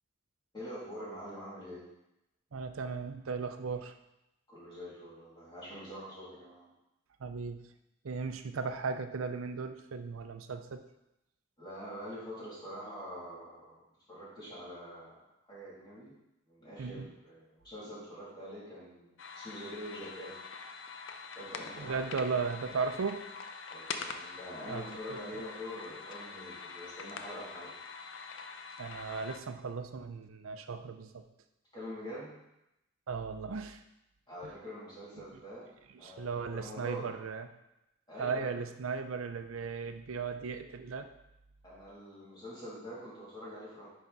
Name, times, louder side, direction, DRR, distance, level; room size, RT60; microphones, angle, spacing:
voice 1, 0.5-1.9 4.5-6.7 11.6-13.8 14.1-15.2 15.4-16.1 16.5-20.4 21.3-22.0 22.3-22.4 23.7-27.7 31.7-32.4 34.3-35.7 36.0-37.1 38.1-38.6 41.6-43.9, equal, 20° left, -8 dB, 2.8 m, -45 dB
voice 2, 2.5-3.9 7.2-7.6 8.0-10.8 16.8-17.1 21.8-23.2 24.7-25.4 28.8-31.2 33.1-33.8 34.4-34.5 35.9-37.5 38.2-41.1, right 5 dB, 85° right, 8 dB, 0.5 m, -36 dB
sound 1, 19.2-29.4, left 5 dB, 65° left, 0.5 m, -45 dB
10.0 x 3.5 x 4.0 m, 0.88 s
head